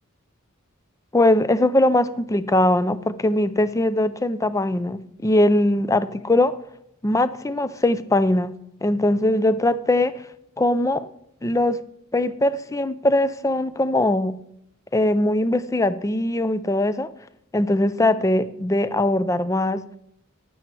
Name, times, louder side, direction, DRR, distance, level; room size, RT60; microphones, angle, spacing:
voice 1, 1.1-6.6 7.0-8.6 8.8-10.2 10.6-11.1 11.4-11.8 12.1-14.4 14.9-17.1 17.5-19.8, left 1 dB, 15° left, 14 dB, 0.4 m, -21 dB
10.5 x 9.1 x 4.5 m, 0.73 s
head